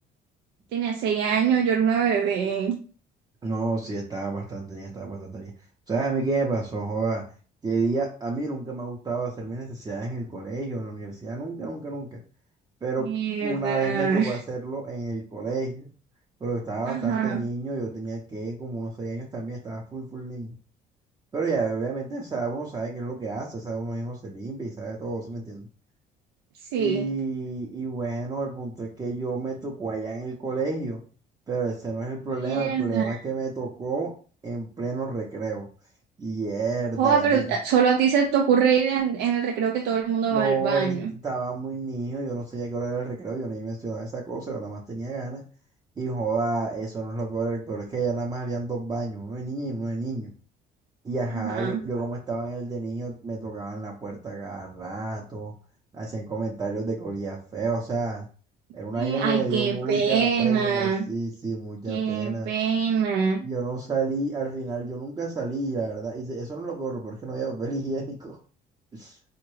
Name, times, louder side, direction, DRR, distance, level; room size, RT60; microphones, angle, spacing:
voice 1, 0.7-2.8 13.0-14.4 16.9-17.4 26.7-27.1 32.4-33.2 37.0-41.1 51.3-51.8 59.0-61.0 61.9-63.4, right 7 dB, 85° right, 3 dB, 0.4 m, -24 dB
voice 2, 3.4-5.5 5.9-7.2 7.6-12.2 12.8-13.1 13.4-15.9 16.4-20.6 21.3-25.7 26.8-31.0 31.5-34.1 34.4-35.7 36.2-37.4 40.3-45.4 46.0-50.3 51.0-55.5 55.9-58.3 58.7-62.5 63.4-68.4 68.9-69.2, right 3 dB, 25° right, -1 dB, 0.6 m, -30 dB
3.6 x 2.1 x 3.1 m, 0.40 s
cardioid pair, 110°, 17 cm